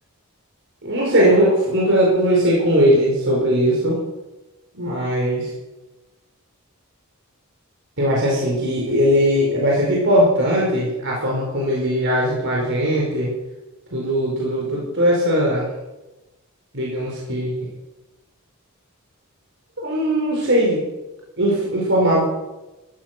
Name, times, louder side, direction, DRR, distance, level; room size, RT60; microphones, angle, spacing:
voice 1, 0.8-4.0 4.8-5.5 8.0-13.3 13.9-15.7 16.7-17.6 19.8-20.8 21.4-22.2, equal, 60° right, -3 dB, 4.8 m, -19 dB
14.5 x 14.0 x 6.6 m, 1.0 s
head